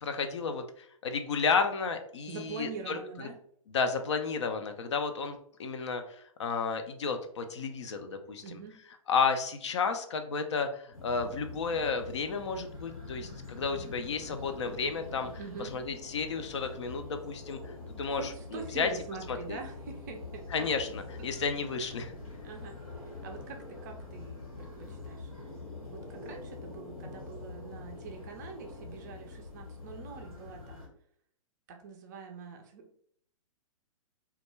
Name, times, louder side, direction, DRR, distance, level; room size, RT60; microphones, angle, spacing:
voice 1, 0.0-3.3 3.7-8.6 9.1-15.3 15.6-17.6 18.0-18.9 19.3-19.6 20.5-22.1, left 5 dB, 55° left, 6 dB, 0.4 m, -32 dB
voice 2, 2.3-3.4 8.4-8.8 15.3-15.8 18.1-20.7 21.2-21.3 22.4-22.8 23.2-25.3 25.8-30.9 31.7-33.0, right 5 dB, 30° right, 4 dB, 0.4 m, -44 dB
sound 1, 10.9-30.9, left 3 dB, 90° left, 1.1 m, -45 dB
2.2 x 2.1 x 3.0 m, 0.64 s
figure-of-eight pair, 115°, 18 cm